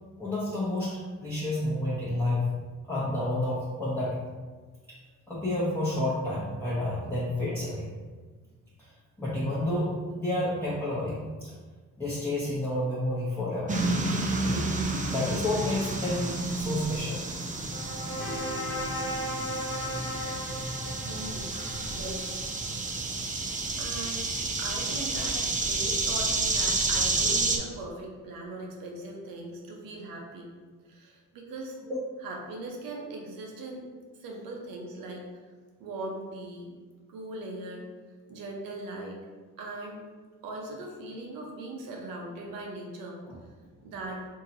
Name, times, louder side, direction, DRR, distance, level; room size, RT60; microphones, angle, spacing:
voice 1, 0.2-2.4 2.8-4.2 4.9-5.0 5.3-7.9 8.8-11.5 12.0-13.7 14.4-14.7 15.1-17.2 31.9-32.0 43.3-43.4, left 1 dB, 5° left, -8 dB, 0.9 m, -30 dB
sound 1, 13.7-27.6, right 2 dB, 25° right, 0.5 m, -30 dB
sound 2, 17.0-22.9, left 1 dB, 80° left, 1.0 m, -37 dB
voice 2, 21.0-21.5 21.9-22.5 22.8-23.0 23.8-24.3 24.6-30.5 30.8-31.8 32.2-33.8 34.2-35.2 35.8-36.7 37.1-37.9 38.3-39.2 39.6-40.0 40.4-43.2 43.8-44.2, right 2 dB, 85° right, 0 dB, 0.8 m, -39 dB
3.8 x 2.9 x 2.7 m, 1.4 s
cardioid pair, 75°, 33 cm